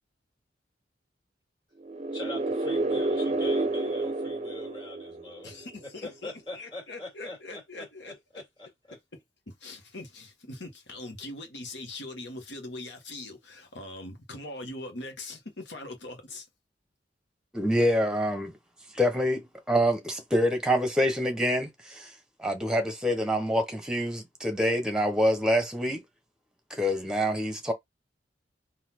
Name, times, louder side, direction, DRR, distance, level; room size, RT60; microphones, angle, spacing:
sound 1, 1.8-5.6, right 2 dB, 35° right, 0.5 m, -29 dB
voice 1, 2.1-5.5 6.0-8.7, left 2 dB, 25° left, 2.1 m, -42 dB
voice 2, 5.4-8.2 9.5-16.5, left 2 dB, 75° left, 1.5 m, -41 dB
voice 3, 17.5-18.5 18.9-22.1 22.4-26.0 26.7-27.7, equal, 5° right, 0.9 m, -26 dB
4.1 x 2.8 x 4.3 m
head